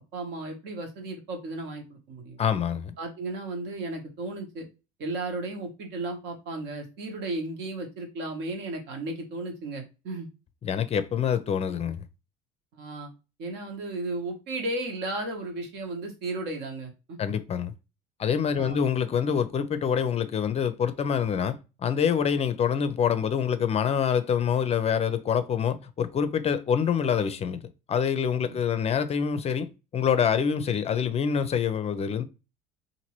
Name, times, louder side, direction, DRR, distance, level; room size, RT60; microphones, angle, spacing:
voice 1, 0.1-2.4 3.0-4.7 5.0-10.3 12.7-13.1 13.4-17.2 18.6-18.8, right 2 dB, 65° right, 1.1 m, -34 dB
voice 2, 2.4-2.9 10.6-12.0 17.2-17.7 18.2-21.6 21.8-27.6 27.9-29.7 29.9-32.2, left 7 dB, 35° left, 0.4 m, -26 dB
2.9 x 2.6 x 2.9 m
supercardioid pair, 80°, 19 cm